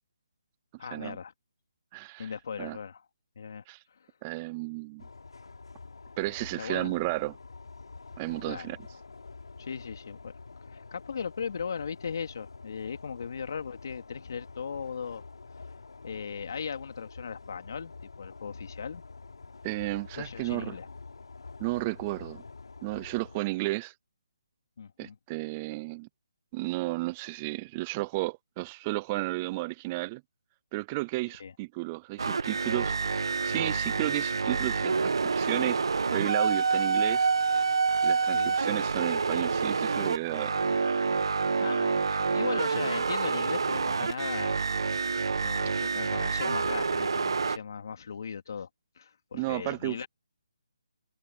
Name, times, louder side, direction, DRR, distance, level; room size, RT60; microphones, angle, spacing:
voice 1, 0.8-1.3 2.2-3.0 3.4-3.6 6.6-7.0 8.4-8.7 9.6-10.3 10.7-15.2 16.0-19.0 20.2-20.9 24.8-25.2 31.4-31.5 38.3-38.6 40.7-40.8 41.6-44.6 45.4-48.7 49.0-50.1, left 6 dB, 50° left, 2.9 m, -38 dB
voice 2, 1.9-2.3 2.6-2.8 3.7-3.8 4.2-5.0 6.2-7.3 8.2-8.8 19.6-20.8 21.6-22.4 22.8-23.9 25.0-26.1 26.5-30.2 30.7-33.0 33.4-35.8 36.1-37.3 38.0-40.6 49.3-50.1, right 22 dB, 15° right, 0.4 m, -33 dB
sound 1, 5.0-23.4, left 4 dB, 90° left, 5.5 m, -47 dB
sound 2, 32.2-47.6, right 4 dB, 70° right, 1.1 m, -27 dB
hypercardioid pair, 170°, 3 cm